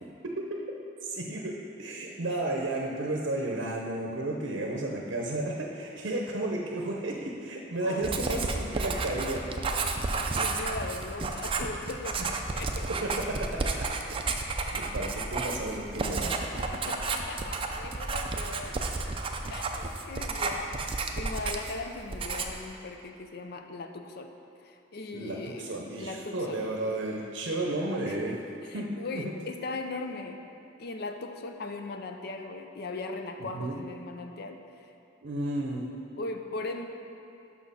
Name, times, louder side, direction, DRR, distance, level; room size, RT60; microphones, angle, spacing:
voice 1, 1.0-9.5 12.2-12.3 13.0-14.4 14.7-16.6 25.1-28.4 28.7-28.9 29.2-29.3 33.4-33.8 35.2-35.9, right 2 dB, 70° right, 0 dB, 0.7 m, -33 dB
voice 2, 7.8-8.8 10.1-12.9 16.5-18.8 19.5-24.3 24.6-26.8 28.1-28.2 28.6-30.4 30.8-34.9 36.2-36.9, left 3 dB, 50° left, 5 dB, 0.5 m, -39 dB
Writing, 8.0-21.8 22.1-22.7, right 3 dB, 25° right, 0.4 m, -32 dB
6.3 x 5.9 x 5.6 m, 2.7 s
head